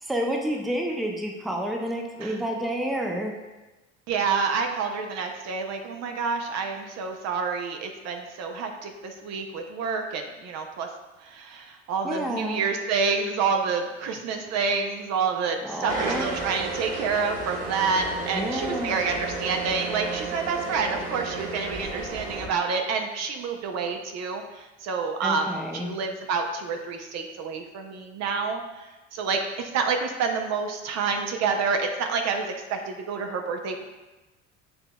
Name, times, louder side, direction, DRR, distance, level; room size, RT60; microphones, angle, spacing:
voice 1, 0.0-3.3 12.0-12.6 15.6-16.3 18.3-18.9 25.2-25.9, equal, ahead, 1 dB, 0.5 m, -29 dB
voice 2, 4.1-10.9 11.2-33.8, right 5 dB, 50° right, 4 dB, 0.6 m, -28 dB
sound 1, 15.9-22.5, right 3 dB, 25° right, 1.3 m, -33 dB
6.5 x 2.8 x 2.2 m, 1.1 s
hypercardioid pair, 70°, 33 cm